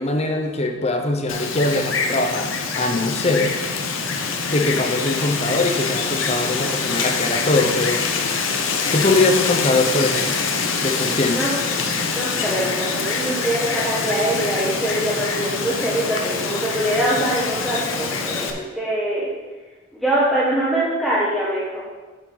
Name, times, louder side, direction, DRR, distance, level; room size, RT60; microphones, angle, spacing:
voice 1, 0.0-3.5 4.5-8.1 8.9-10.3 10.8-11.5, left 2 dB, 35° left, 4 dB, 0.9 m, -22 dB
Wind, 1.3-18.5, left 4 dB, 90° left, 0.9 m, -25 dB
voice 2, 11.1-11.5 12.2-19.2 19.9-21.8, right 1 dB, ahead, -8 dB, 1.3 m, -23 dB
8.4 x 7.4 x 4.0 m, 1.2 s
head